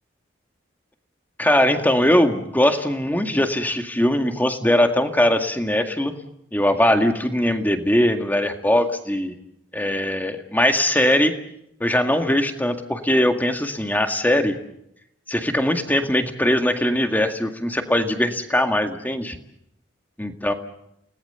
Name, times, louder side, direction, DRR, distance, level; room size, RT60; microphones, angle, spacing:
voice 1, 1.4-6.1 6.5-9.3 9.7-11.3 11.8-14.6 15.3-19.4 20.2-20.5, left 1 dB, 10° left, 6 dB, 1.9 m, -20 dB
29.5 x 19.0 x 6.9 m, 0.79 s
head